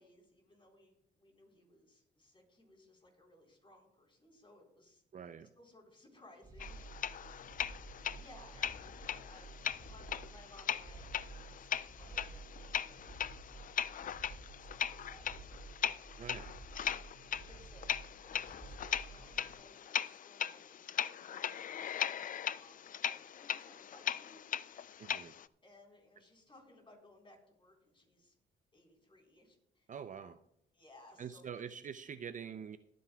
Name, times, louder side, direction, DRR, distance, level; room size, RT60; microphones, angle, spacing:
voice 1, 0.0-5.0 5.6-7.6 7.9-13.6 13.9-16.3 17.3-17.9 18.2-22.0 22.3-24.4 25.6-28.3 28.7-29.9 30.7-31.6, left 1 dB, 25° left, 0 dB, 4.0 m, -61 dB
voice 2, 5.1-5.5 16.2-16.5 25.0-25.3 29.9-30.4 31.2-32.8, right 7 dB, 40° right, 11 dB, 0.5 m, -45 dB
sound 1, 6.4-19.5, right 4 dB, 20° right, 3.5 m, -52 dB
sound 2, 6.6-25.5, left 9 dB, 45° left, 0.4 m, -39 dB
22.0 x 9.4 x 2.3 m, 0.77 s
cardioid pair, 90°, 20 cm